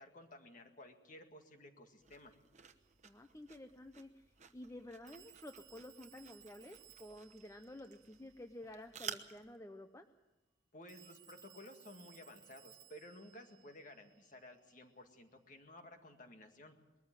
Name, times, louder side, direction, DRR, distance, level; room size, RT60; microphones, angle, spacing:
voice 1, 0.0-2.3 10.7-16.8, left 1 dB, 45° left, 5 dB, 2.0 m, -55 dB
sound 1, 2.0-9.6, right 7 dB, 40° right, 1.1 m, -53 dB
Telephone, 2.8-2.9 5.1-8.8 10.9-14.6, right 10 dB, 20° right, 0.8 m, -62 dB
voice 2, 3.0-4.2 4.5-10.1, left 1 dB, 15° left, 7 dB, 0.7 m, -52 dB
21.0 x 14.0 x 9.0 m, 1.1 s
head